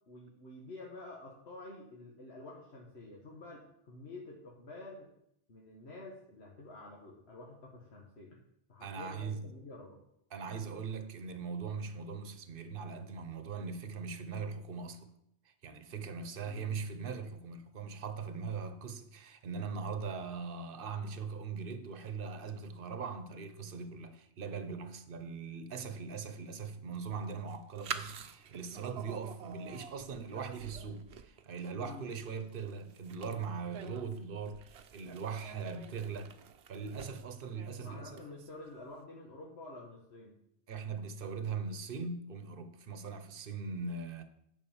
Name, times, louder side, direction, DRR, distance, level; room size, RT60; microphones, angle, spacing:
voice 1, 0.1-5.1 5.5-8.4 8.7-10.0 16.4-16.7 31.7-32.1 37.8-40.4, left 2 dB, 80° left, 1.7 m, -49 dB
voice 2, 8.8-9.5 10.3-15.1 15.6-36.3 36.7-38.2 40.7-44.2, right 5 dB, 60° right, 1.1 m, -40 dB
sound 1, 26.9-38.7, right 8 dB, 80° right, 1.0 m, -48 dB
9.8 x 5.4 x 7.2 m
omnidirectional pair, 1.1 m